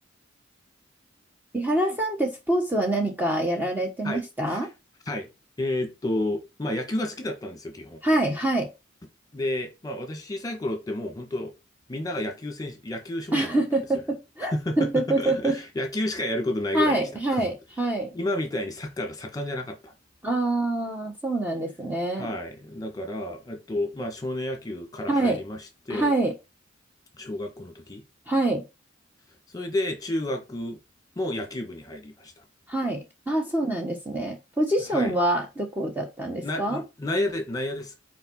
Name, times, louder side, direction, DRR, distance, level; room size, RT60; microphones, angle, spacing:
voice 1, 1.5-4.7 8.0-8.7 13.3-15.6 16.7-18.1 20.2-22.3 25.1-25.4 25.9-26.3 28.3-28.6 32.7-36.8, right 1 dB, 10° right, 1.3 m, -25 dB
voice 2, 4.0-4.6 5.1-5.3 5.6-8.0 9.3-11.5 11.9-13.6 14.4-17.4 18.1-19.9 22.2-26.1 27.2-28.0 29.5-30.8 31.2-32.4 34.9-35.1 36.4-37.9, left 1 dB, 20° left, 1.8 m, -31 dB
5.8 x 4.8 x 5.5 m
head